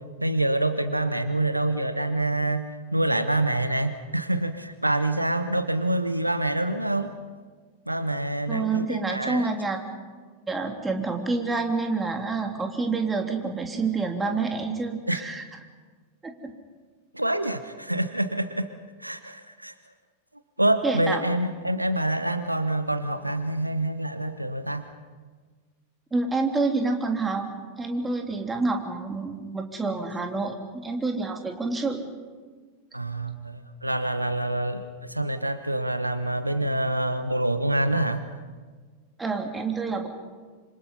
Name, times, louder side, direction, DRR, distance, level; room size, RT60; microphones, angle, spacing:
voice 1, 0.2-2.7 2.9-7.1 7.9-9.5 15.1-15.2 17.1-18.7 19.0-19.7 20.6-24.8 32.9-38.2, right 1 dB, 85° right, 11 dB, 1.1 m, -26 dB
voice 2, 8.5-9.8 10.5-15.4 16.2-16.5 20.8-21.2 26.1-27.5 27.8-30.5 30.8-32.0 39.2-40.1, right 3 dB, 15° right, 3 dB, 3.1 m, -28 dB
27.0 x 26.0 x 5.6 m, 1.5 s
figure-of-eight pair, 90°, 0 cm